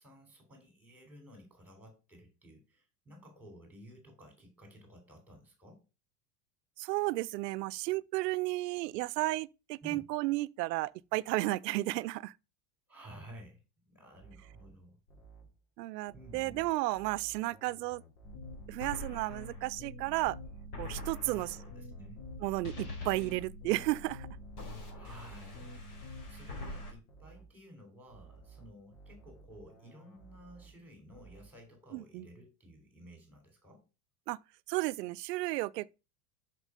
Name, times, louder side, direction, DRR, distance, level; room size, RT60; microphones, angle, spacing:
voice 1, 0.0-5.8 9.8-10.0 12.9-15.0 16.1-16.6 21.2-22.3 24.9-25.7 26.0-33.9, equal, 5° right, 3.2 m, -54 dB
voice 2, 6.8-12.3 15.8-18.0 18.7-20.4 20.8-21.6 22.4-24.3 31.9-32.3 34.3-34.4 34.7-35.9, right 20 dB, 90° right, 0.6 m, -33 dB
sound 1, 14.2-15.6 16.1-18.8 19.1-19.6 20.1-23.6 24.1-26.8 27.1-27.6 28.1-30.8 31.1-31.6, right 4 dB, 75° left, 4.1 m, -56 dB
sound 2, 18.2-26.9, left 2 dB, 60° left, 3.7 m, -44 dB
6.5 x 6.0 x 4.9 m
supercardioid pair, 160°, 48 cm